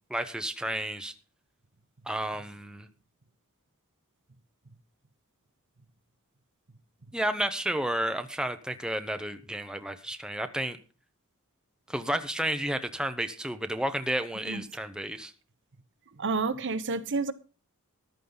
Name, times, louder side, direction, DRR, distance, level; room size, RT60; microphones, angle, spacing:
voice 1, 0.1-1.1 2.1-2.9 7.1-10.8 11.9-15.3, right 1 dB, 5° right, 0.9 m, -31 dB
voice 2, 16.2-17.3, right 4 dB, 55° right, 1.0 m, -29 dB
14.0 x 11.0 x 4.0 m
head